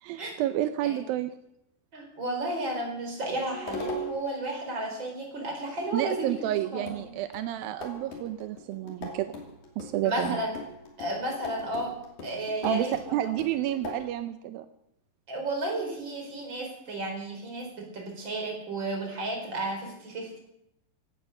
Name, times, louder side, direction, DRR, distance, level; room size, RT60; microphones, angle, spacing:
voice 1, 0.0-1.3 5.9-9.3 9.8-10.4 12.6-14.7, right 13 dB, 85° right, 10 dB, 2.5 m, -30 dB
voice 2, 1.9-7.1 10.0-10.5 11.0-12.0 12.2-13.3 15.3-20.4, right 1 dB, 30° right, 2 dB, 4.9 m, -33 dB
sound 1, 3.5-4.4 6.3-6.4 6.9-14.1, left 1 dB, 55° left, 4.1 m, -40 dB
16.5 x 12.5 x 6.7 m, 0.82 s
omnidirectional pair, 4.1 m